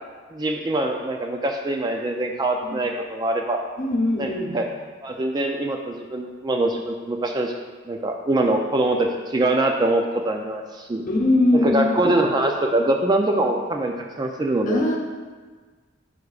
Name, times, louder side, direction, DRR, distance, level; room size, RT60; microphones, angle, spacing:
voice 1, 0.3-3.6 4.2-4.7 5.0-7.5 7.9-11.0 11.5-14.8, right 2 dB, 20° right, 3 dB, 0.3 m, -23 dB
voice 2, 3.8-4.5 11.1-11.9 14.7-15.0, left 2 dB, 40° left, 0 dB, 0.9 m, -21 dB
9.7 x 4.6 x 2.4 m, 1.4 s
head